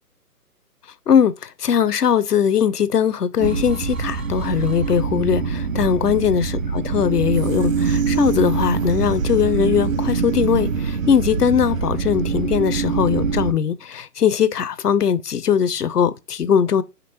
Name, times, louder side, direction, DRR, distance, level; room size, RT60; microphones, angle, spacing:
voice 1, 1.1-16.8, left 8 dB, 75° left, 0.7 m, -20 dB
sound 1, 3.4-13.5, right 5 dB, 55° right, 0.7 m, -23 dB
5.1 x 3.0 x 2.9 m
figure-of-eight pair, 140°, 48 cm